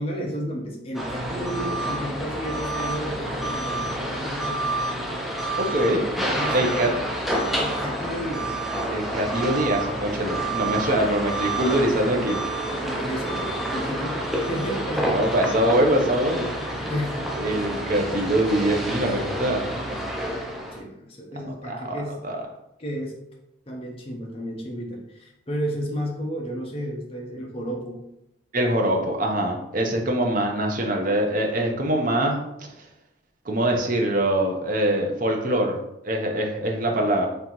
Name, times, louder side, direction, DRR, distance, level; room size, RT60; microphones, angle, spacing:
voice 1, 0.0-4.7 6.3-6.9 7.6-8.6 10.3-10.4 12.7-15.2 16.8-17.6 20.7-22.2 22.8-23.1 23.7-28.0, equal, 30° left, -1 dB, 0.7 m, -32 dB
sound 1, 0.9-20.8, right 1 dB, ahead, 0.4 m, -28 dB
voice 2, 5.6-6.0 6.5-6.9 8.9-12.4 15.1-16.8 17.4-19.6 21.6-22.4 28.5-32.4 33.4-35.8 36.0-37.3, right 1 dB, 40° right, 1 dB, 0.6 m, -23 dB
3.9 x 3.4 x 2.9 m, 0.84 s
head